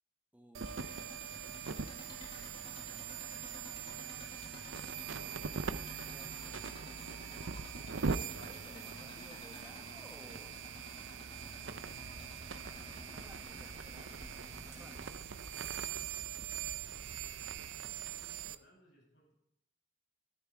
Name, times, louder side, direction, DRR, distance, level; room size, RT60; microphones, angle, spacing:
voice 1, 0.3-1.4 6.0-10.6 12.6-14.3 14.6-15.1, equal, 10° right, 3 dB, 1.6 m, -59 dB
sound 1, 0.5-18.6, right 6 dB, 80° right, 0.6 m, -42 dB
sound 2, 0.6-15.0, left 1 dB, 25° left, 1.9 m, -53 dB
sound 3, 11.8-17.6, equal, 55° right, 4.1 m, -55 dB
voice 2, 14.7-15.1 15.4-16.6 16.9-17.4 17.8-19.3, equal, 70° left, -2 dB, 7.1 m, -66 dB
12.5 x 12.5 x 4.7 m, 0.76 s
head